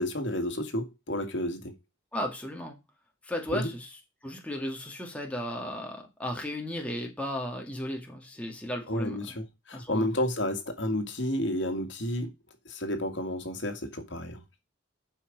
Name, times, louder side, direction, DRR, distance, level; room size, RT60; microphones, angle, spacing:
voice 1, 0.0-1.7 3.5-3.7 8.9-12.3 12.7-14.4, left 1 dB, 70° left, 2.0 m, -31 dB
voice 2, 2.1-2.8 3.2-3.9 4.2-9.3 9.7-10.1, left 1 dB, 5° left, 2.0 m, -35 dB
11.0 x 5.7 x 5.2 m
head